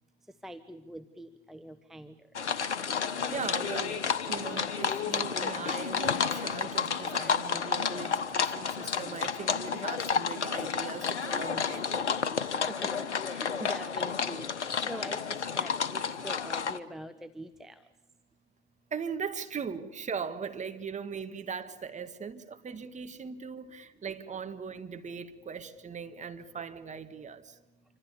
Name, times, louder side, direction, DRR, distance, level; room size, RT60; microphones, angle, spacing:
voice 1, 0.4-2.1 2.8-2.9 12.5-17.8, equal, ahead, 0.9 m, -44 dB
sound 1, 2.4-16.8, left 6 dB, 85° left, 1.2 m, -31 dB
voice 2, 3.2-12.1 18.9-27.6, right 6 dB, 20° right, 1.9 m, -39 dB
27.0 x 25.5 x 7.0 m
hypercardioid pair, 85°, 34 cm